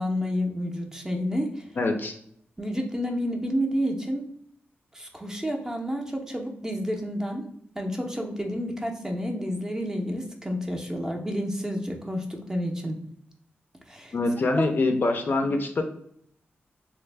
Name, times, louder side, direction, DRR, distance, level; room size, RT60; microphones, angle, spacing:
voice 1, 0.0-1.7 2.6-4.2 4.9-7.4 7.8-13.0 13.9-14.1 14.6-14.7, equal, 15° right, 2 dB, 0.5 m, -30 dB
voice 2, 1.8-2.1 14.1-15.8, left 2 dB, 50° left, 5 dB, 0.4 m, -24 dB
3.2 x 2.0 x 3.2 m, 0.67 s
wide cardioid pair, 115°, 4 cm